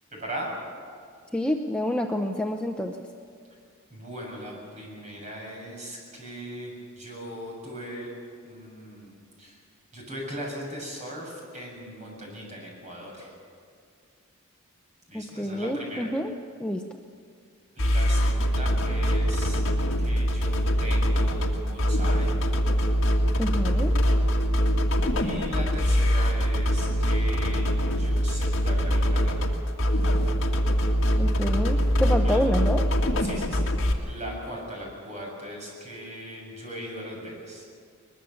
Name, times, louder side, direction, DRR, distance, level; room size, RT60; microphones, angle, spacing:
voice 1, 0.1-0.5 3.9-8.1 8.4-9.6 9.9-13.3 15.1-16.1 17.8-19.6 20.0-22.3 25.1-27.7 28.0-29.4 32.2-32.4 33.2-33.7 34.1-37.6, equal, 30° right, -2 dB, 7.1 m, -38 dB
voice 2, 1.3-3.0 15.1-16.3 16.6-16.8 23.4-23.9 31.1-32.8, left 1 dB, 5° left, 2 dB, 0.7 m, -28 dB
sound 1, 17.8-33.9, equal, 55° left, 2.3 m, -23 dB
22.5 x 21.0 x 7.1 m, 2.2 s
head